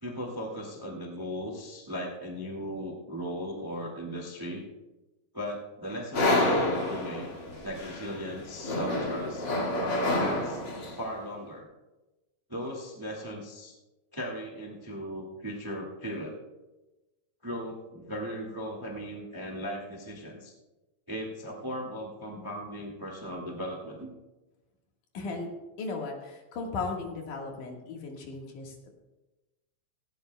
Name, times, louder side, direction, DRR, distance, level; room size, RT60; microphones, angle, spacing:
voice 1, 0.0-4.6 5.3-7.3 7.6-9.5 10.1-10.6 10.9-11.7 12.5-13.7 14.1-16.4 17.4-20.5 21.1-24.1, equal, 25° right, 0 dB, 0.5 m, -37 dB
sound 1, 6.1-11.1, left 1 dB, 40° left, 1.9 m, -29 dB
voice 2, 25.1-25.5 25.8-28.9, left 3 dB, 60° left, 0 dB, 3.0 m, -36 dB
17.5 x 16.0 x 2.2 m, 1.1 s
omnidirectional pair, 4.2 m